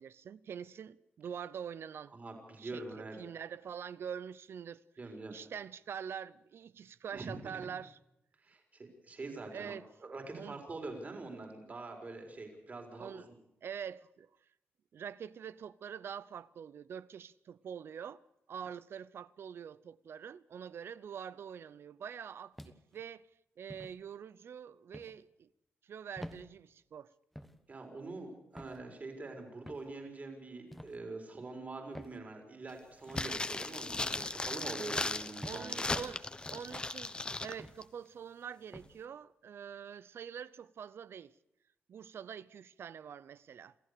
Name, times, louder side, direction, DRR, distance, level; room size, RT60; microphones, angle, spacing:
voice 1, 0.0-2.2 2.6-4.8 5.3-8.0 9.5-9.8 10.3-10.6 13.0-13.3 13.6-14.3 14.9-18.2 18.5-23.3 23.6-25.5 25.8-27.1 35.4-41.3 41.9-43.7, right 8 dB, 70° right, 0.7 m, -45 dB
voice 2, 2.1-3.1 5.0-5.4 7.1-7.6 8.4-9.7 10.0-13.2 27.7-35.7, right 3 dB, 35° right, 4.6 m, -44 dB
sound 1, 22.6-23.0 23.7-24.0 24.9-25.2 26.2-26.4 27.3-27.6 28.6-28.8 29.6-29.9 30.7-31.0 31.9-32.2 33.1-33.3 34.2-34.4 35.4-35.7 36.4-36.7 37.6-37.8 38.7-38.9, equal, ahead, 1.4 m, -48 dB
sound 2, 33.1-37.5 37.8-37.9, left 2 dB, 20° left, 1.1 m, -37 dB
27.5 x 14.5 x 6.8 m
cardioid pair, 110°, 4 cm